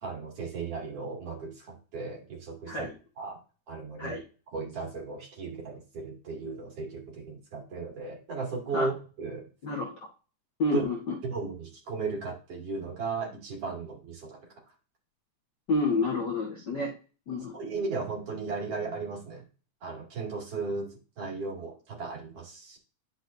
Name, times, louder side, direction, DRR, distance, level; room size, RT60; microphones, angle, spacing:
voice 1, 0.0-2.9 3.2-3.4 3.7-4.2 4.5-9.5 10.7-10.8 11.2-14.4 17.5-19.4 19.8-20.9 21.2-22.8, right 4 dB, 50° right, -2 dB, 3.4 m, -35 dB
voice 2, 10.6-11.1 15.7-16.9 17.3-17.5, left 3 dB, 50° left, -3 dB, 1.4 m, -29 dB
10.0 x 5.9 x 2.7 m, 0.36 s
omnidirectional pair, 3.6 m